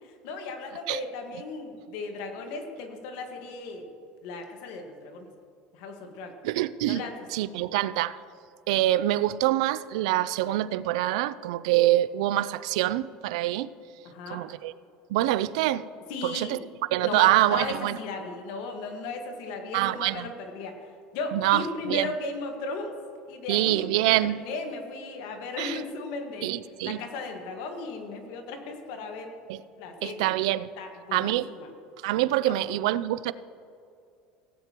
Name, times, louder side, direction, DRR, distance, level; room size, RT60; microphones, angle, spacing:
voice 1, 0.0-3.9 4.2-5.3 5.7-6.3 6.8-7.1 14.0-14.4 16.1-16.6 17.0-20.8 21.1-22.9 23.3-26.6 26.8-29.3 29.8-30.2 30.8-31.7 32.4-32.6, left 3 dB, 75° left, 4 dB, 1.5 m, -36 dB
voice 2, 6.4-7.0 7.3-8.2 8.7-13.7 14.3-14.7 15.1-15.8 16.2-16.6 16.9-18.0 19.7-20.3 21.3-22.1 23.5-24.4 25.6-25.8 26.4-27.0 29.5-29.6 30.0-30.7 31.1-31.5 32.0-33.3, right 15 dB, 85° right, 17 dB, 0.3 m, -25 dB
17.0 x 9.0 x 2.9 m, 2.5 s
supercardioid pair, 120°, 3 cm